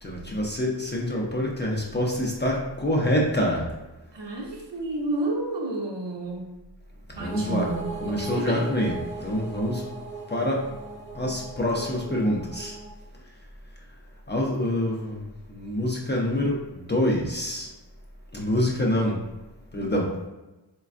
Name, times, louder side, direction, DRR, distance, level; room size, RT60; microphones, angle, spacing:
voice 1, 0.0-3.7 7.2-7.7 8.0-8.9 9.2-9.8 10.3-10.6 11.1-12.8 14.3-15.2 15.5-17.7 18.3-19.2 19.7-20.1, left 1 dB, 25° left, -3 dB, 0.5 m, -26 dB
voice 2, 4.1-6.5 7.2-8.7, right 2 dB, 70° right, -1 dB, 0.6 m, -30 dB
sound 1, 7.2-12.9, right 3 dB, 15° right, 0.7 m, -38 dB
3.2 x 2.2 x 2.4 m, 1.1 s
wide cardioid pair, 65°, 44 cm